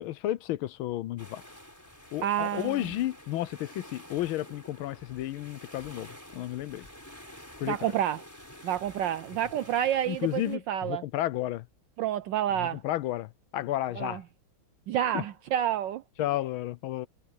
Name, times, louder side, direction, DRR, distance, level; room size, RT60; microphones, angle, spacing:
voice 1, 0.0-1.4 2.1-6.9 7.6-7.8 10.1-11.7 12.6-14.2 15.1-15.2 16.2-17.1, left 14 dB, 80° left, 1.5 m, -32 dB
sound 1, 1.2-10.6, equal, 10° left, 4.6 m, -49 dB
voice 2, 2.2-2.8 7.6-8.2 8.6-11.0 12.0-12.8 14.0-14.2 14.9-16.0, right 11 dB, 75° right, 1.2 m, -29 dB
omnidirectional pair, 2.3 m